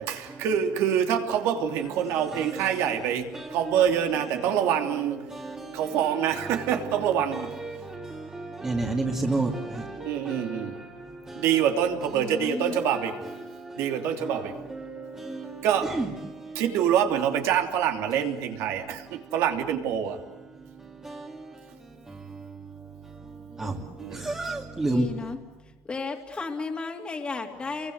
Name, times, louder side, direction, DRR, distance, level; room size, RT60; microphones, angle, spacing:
voice 1, 0.0-5.2 5.7-7.6 10.0-10.8 11.3-13.2 13.8-14.6 15.6-16.0 16.5-20.2 23.6-24.3, right 9 dB, 75° right, 3.0 m, -26 dB
voice 2, 2.1-3.0 3.3-4.0 4.3-4.6 5.2-7.0 7.3-11.7 12.7-16.6 19.1-19.3 20.5-25.3, right 2 dB, 15° right, 2.4 m, -34 dB
voice 3, 12.1-12.8 24.9-25.4 25.6-27.9, left 4 dB, 20° left, 2.7 m, -34 dB
29.0 x 23.5 x 8.1 m
cardioid pair, 125°, 5 cm